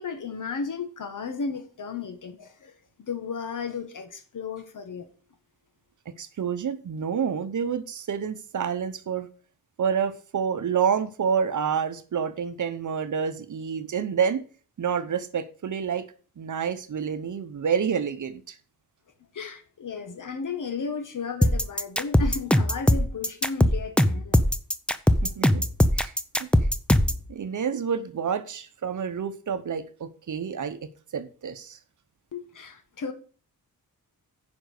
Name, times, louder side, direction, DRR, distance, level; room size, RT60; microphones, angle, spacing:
voice 1, 0.0-2.7 3.0-5.1 19.3-24.5 32.3-33.1, left 5 dB, 55° left, 1.6 m, -34 dB
voice 2, 6.2-9.3 9.8-14.5 14.8-16.1 16.4-18.6 25.2-25.6 25.9-26.1 26.4-26.5 27.3-30.8 31.1-31.8, right 7 dB, 55° right, 0.9 m, -28 dB
sound 1, 21.4-27.2, left 1 dB, 5° left, 0.5 m, -21 dB
9.9 x 5.3 x 6.6 m
wide cardioid pair, 115°, 36 cm